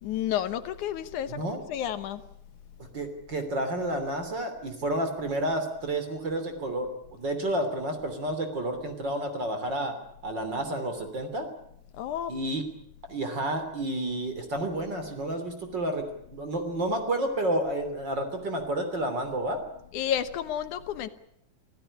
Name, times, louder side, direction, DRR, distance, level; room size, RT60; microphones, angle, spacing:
voice 1, 0.0-2.2 12.0-12.3 19.9-21.1, left 10 dB, 75° left, 12 dB, 2.6 m, -31 dB
voice 2, 1.3-1.6 2.9-9.9 10.2-11.5 12.3-12.6 13.1-16.1 16.3-19.6, right 1 dB, 35° right, 7 dB, 3.6 m, -30 dB
26.0 x 16.0 x 9.9 m, 0.75 s
omnidirectional pair, 3.5 m